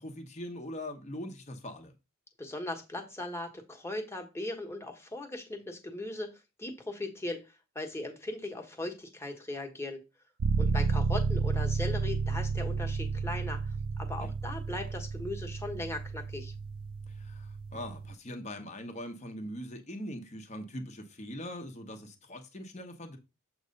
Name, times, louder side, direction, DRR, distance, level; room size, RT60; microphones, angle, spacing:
voice 1, 0.0-1.9 10.7-10.8 14.2-14.3 17.1-23.2, left 1 dB, 30° left, 0.9 m, -42 dB
voice 2, 2.4-10.0 10.6-16.5, left 2 dB, 10° left, 1.2 m, -38 dB
sound 1, 10.4-18.1, right 5 dB, 75° right, 0.4 m, -31 dB
7.5 x 3.1 x 5.2 m
head